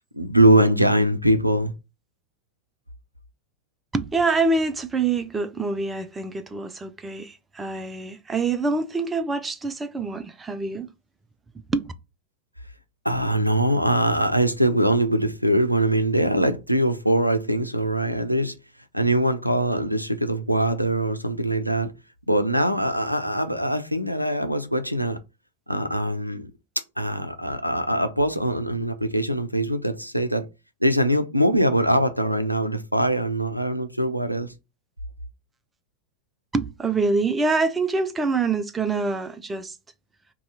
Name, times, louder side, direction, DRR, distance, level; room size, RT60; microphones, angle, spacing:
voice 1, 0.1-1.7 13.0-18.6 18.9-21.9 22.3-25.2 25.7-26.5 27.0-30.5 30.8-34.5, right 1 dB, 90° right, 0.4 m, -22 dB
voice 2, 3.9-10.9 11.7-11.9 36.5-39.8, right 3 dB, 15° right, 0.4 m, -25 dB
2.7 x 2.3 x 3.8 m
figure-of-eight pair, 90°, 0 cm